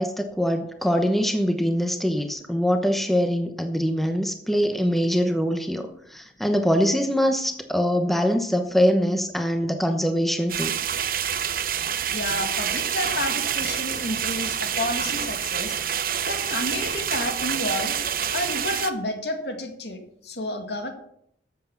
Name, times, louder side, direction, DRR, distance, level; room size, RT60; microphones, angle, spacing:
voice 1, 0.0-10.7, equal, ahead, 5 dB, 0.9 m, -23 dB
sound 1, 10.5-18.9, right 9 dB, 55° right, 0.8 m, -27 dB
voice 2, 12.1-18.0 18.3-20.9, left 2 dB, 75° left, 5 dB, 2.0 m, -31 dB
13.0 x 7.8 x 5.9 m, 0.72 s
head